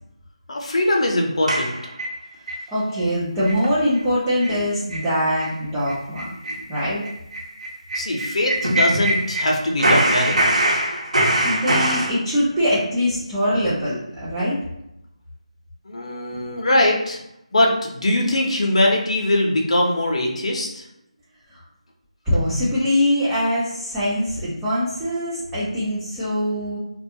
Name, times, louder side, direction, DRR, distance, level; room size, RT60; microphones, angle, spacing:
voice 1, 0.5-1.7 6.5-6.6 7.9-10.4 15.8-17.2 17.5-20.9, left 1 dB, 60° left, 0 dB, 0.7 m, -21 dB
sound 1, 1.5-2.6 3.0-3.1 3.4-3.7 4.0-4.1 4.4-4.6 4.9-5.1 5.4-5.5 5.9-9.5 9.8-12.1, right 1 dB, 75° right, 1.0 m, -22 dB
voice 2, 2.7-6.2 6.7-7.0 11.4-14.5 16.3-16.4 21.5-21.6 22.3-26.8, equal, 5° right, -13 dB, 0.4 m, -23 dB
2.4 x 2.2 x 2.7 m, 0.84 s
figure-of-eight pair, 170°, 4 cm